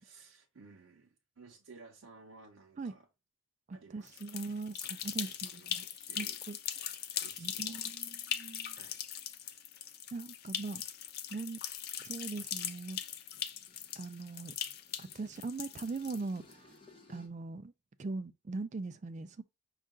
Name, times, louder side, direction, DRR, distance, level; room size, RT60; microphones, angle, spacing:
voice 1, 0.0-3.1 3.7-4.6 5.0-6.4 7.2-8.0 8.7-9.0 9.4-10.0, right 4 dB, 80° right, 0.6 m, -57 dB
voice 2, 3.7-5.8 6.2-7.0 7.4-8.8 10.1-10.8 11.3-11.6 12.0-13.0 14.0-14.5 15.0-16.7 17.1-17.7 18.0-19.4, right 3 dB, 35° right, 0.3 m, -41 dB
sound 1, 4.1-16.5, left 10 dB, 50° left, 0.4 m, -40 dB
sound 2, 12.8-17.3, left 3 dB, 25° left, 0.8 m, -62 dB
5.4 x 2.4 x 3.6 m
head